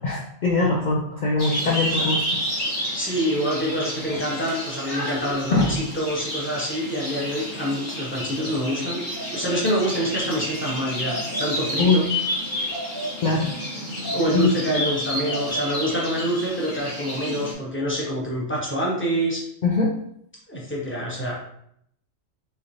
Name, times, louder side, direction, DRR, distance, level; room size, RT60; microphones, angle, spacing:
voice 1, 0.0-2.5 4.9-5.2 5.5-5.7 11.8-12.0 13.2-13.5 14.3-14.5 19.6-19.9, left 3 dB, 65° left, -3 dB, 0.4 m, -22 dB
sound 1, 1.4-17.5, equal, 40° left, 1.1 m, -30 dB
voice 2, 2.9-12.0 14.1-19.4 20.5-21.3, equal, 10° left, -4 dB, 0.8 m, -26 dB
3.7 x 3.3 x 2.7 m, 0.71 s
omnidirectional pair, 1.3 m